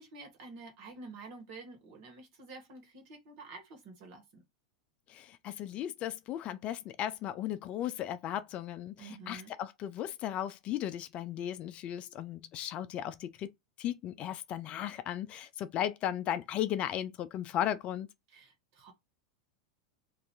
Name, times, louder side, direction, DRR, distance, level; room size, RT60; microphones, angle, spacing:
voice 1, 0.0-4.4 9.0-9.5 18.3-18.9, right 3 dB, 50° right, 1.3 m, -49 dB
voice 2, 5.1-13.5 13.8-18.1, left 11 dB, 40° left, 0.3 m, -36 dB
2.6 x 2.4 x 3.3 m
figure-of-eight pair, 90°, 3 cm